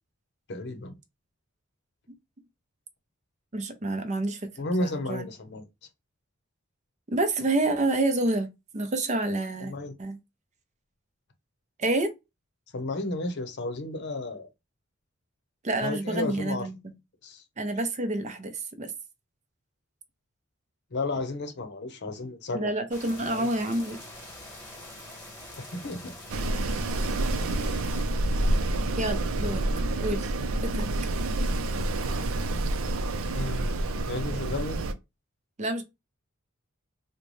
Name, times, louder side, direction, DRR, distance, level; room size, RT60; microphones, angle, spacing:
voice 1, 0.5-1.0 4.6-5.7 9.6-9.9 12.7-14.5 15.8-16.7 17.2-17.4 20.9-22.7 23.2-23.5 25.6-26.1 33.3-33.8 34.1-34.8, left 2 dB, 55° left, 0.7 m, -33 dB
voice 2, 3.5-4.4 4.8-5.2 7.1-8.5 8.7-9.7 10.0-10.2 11.8-12.1 15.6-16.8 17.6-18.5 18.8-18.9 22.5-24.0 29.0-29.6 30.0-30.3 30.6-30.9 35.6-35.8, right 2 dB, 35° right, 0.6 m, -28 dB
sound 1, 22.9-28.0, left 1 dB, 10° left, 1.3 m, -44 dB
Wind, 26.3-34.9, right 2 dB, 80° right, 0.5 m, -28 dB
3.9 x 2.2 x 3.1 m
head